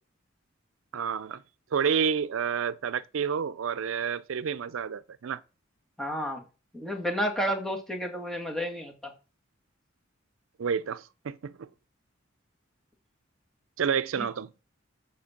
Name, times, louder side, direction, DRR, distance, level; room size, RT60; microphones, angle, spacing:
voice 1, 0.9-1.4 1.7-5.4 10.6-11.7 13.8-14.5, right 7 dB, 85° right, 0.4 m, -29 dB
voice 2, 6.0-6.4 6.7-9.1 14.2-14.3, equal, ahead, 1.8 m, -31 dB
7.7 x 4.4 x 7.1 m
head